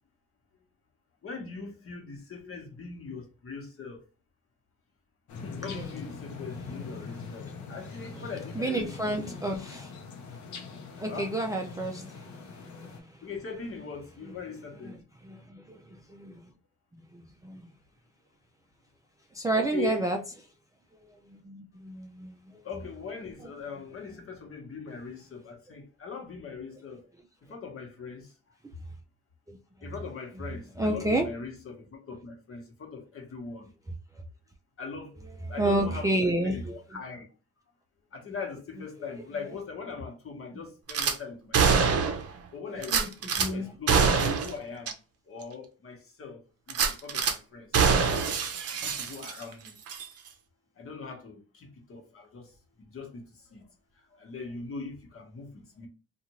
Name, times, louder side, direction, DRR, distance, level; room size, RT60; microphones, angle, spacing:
voice 1, 1.2-4.0 5.4-9.4 11.1-11.3 13.2-15.0 19.5-20.2 22.6-27.0 27.4-28.3 29.8-33.7 34.8-35.2 35.5-36.2 36.4-37.3 38.1-42.2 42.5-43.0 43.3-45.0 45.2-46.4 46.7-48.4 48.8-49.8 50.8-55.9, left 5 dB, 45° left, 1.1 m, -41 dB
sound 1, 5.3-13.0, left 5 dB, 75° left, 0.7 m, -42 dB
voice 2, 8.6-9.9 11.0-13.2 14.8-14.9 15.2-16.4 17.1-17.6 19.3-20.2 21.3-22.3 30.8-31.3 35.6-36.7 42.9-44.0, right 1 dB, 10° right, 0.4 m, -30 dB
Gunshot gunfire / Glass, 40.9-41.2 41.5-42.3 42.8-43.5 43.9-44.5 44.9-45.0 45.4-45.5 46.7-47.4 47.7-49.5 49.9-50.0, right 6 dB, 50° right, 0.6 m, -25 dB
2.5 x 2.5 x 3.0 m
cardioid pair, 90°, 30 cm